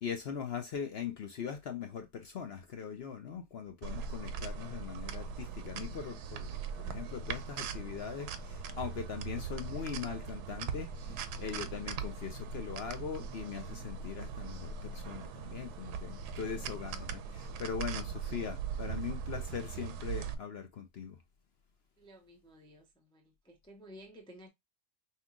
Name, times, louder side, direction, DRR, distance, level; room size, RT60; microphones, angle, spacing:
voice 1, 0.0-21.2, left 7 dB, 60° left, 0.6 m, -41 dB
sound 1, 3.8-20.3, right 6 dB, 90° right, 1.2 m, -40 dB
voice 2, 22.0-24.5, equal, 5° left, 0.7 m, -54 dB
5.4 x 2.9 x 2.4 m
omnidirectional pair, 1.7 m